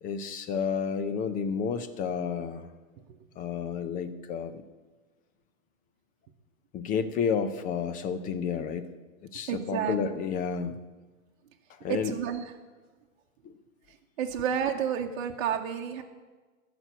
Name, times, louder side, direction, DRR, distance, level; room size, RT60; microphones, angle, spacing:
voice 1, 0.0-2.7 3.4-4.6 6.7-8.9 9.2-10.7 11.8-12.1, left 6 dB, 20° left, 11 dB, 0.6 m, -31 dB
voice 2, 9.5-10.0 11.9-12.5 14.2-16.0, right 8 dB, 55° right, 2 dB, 1.0 m, -30 dB
14.0 x 6.1 x 8.1 m, 1.3 s
hypercardioid pair, 130°, 40 cm